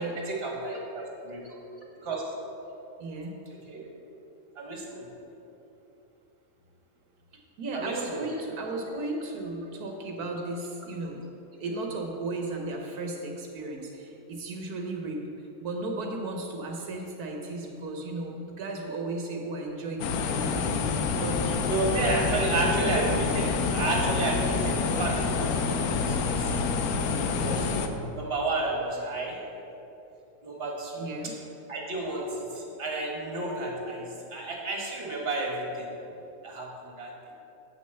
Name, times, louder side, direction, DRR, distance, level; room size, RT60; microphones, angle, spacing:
voice 1, 0.0-1.5 2.0-2.2 3.7-3.8 4.6-5.1 7.7-8.2 21.7-23.1 23.4-26.5 27.4-27.7 28.1-29.4 30.4-31.3 31.7-35.9 36.4-37.1, right 2 dB, 40° right, -1 dB, 1.8 m, -31 dB
voice 2, 3.0-3.4 7.3-11.2 11.6-20.7 21.2-21.7 22.3-23.2 31.0-31.3, right 2 dB, 85° right, 2 dB, 1.5 m, -35 dB
sound 1, 20.0-27.9, left 4 dB, 80° left, 1.2 m, -27 dB
8.1 x 6.3 x 6.8 m, 2.9 s
omnidirectional pair, 1.6 m